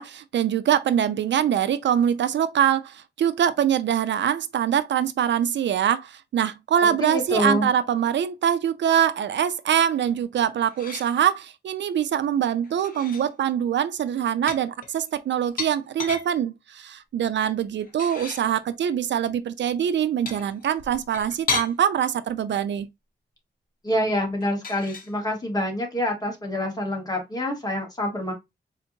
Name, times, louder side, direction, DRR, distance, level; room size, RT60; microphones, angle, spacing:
voice 1, 0.0-22.9, right 9 dB, 80° right, 0.4 m, -24 dB
voice 2, 6.8-7.7 23.8-28.3, left 1 dB, 20° left, 1.3 m, -26 dB
sound 1, 10.6-11.2 12.6-13.3 14.5-16.3 17.8-18.5 20.3-21.7 24.4-25.1, left 4 dB, 50° left, 1.0 m, -33 dB
4.3 x 2.8 x 2.7 m
wide cardioid pair, 140°, 18 cm